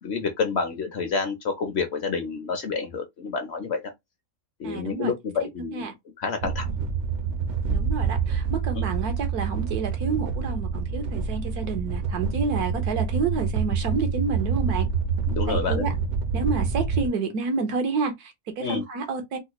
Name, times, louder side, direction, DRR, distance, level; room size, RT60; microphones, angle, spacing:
voice 1, 0.0-3.9 4.6-5.9 6.2-6.7 8.7-8.8 15.3-15.9 18.6-18.8, left 5 dB, 60° left, 0.7 m, -28 dB
voice 2, 4.6-5.1 5.7-5.9 7.7-14.9 15.5-15.9 16.3-19.4, right 4 dB, 85° right, 1.4 m, -29 dB
sound 1, 6.4-17.1, right 5 dB, 60° right, 0.8 m, -27 dB
3.8 x 2.1 x 2.9 m
omnidirectional pair, 1.6 m